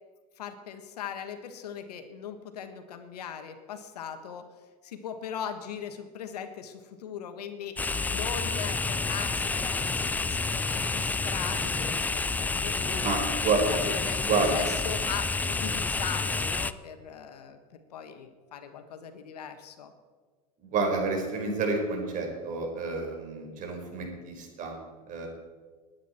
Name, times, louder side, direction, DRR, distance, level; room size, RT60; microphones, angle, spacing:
voice 1, 0.4-4.4 4.8-13.0 13.7-14.2 14.5-17.6 17.9-19.9, left 8 dB, 90° left, 8 dB, 1.5 m, -39 dB
sound 1, 7.8-16.7, left 3 dB, 10° left, 0.3 m, -29 dB
voice 2, 13.0-13.7 14.2-14.6 20.6-24.8 25.1-25.3, right 4 dB, 40° right, 2 dB, 4.6 m, -29 dB
20.5 x 9.5 x 4.5 m, 1.5 s
hypercardioid pair, 110°, 20 cm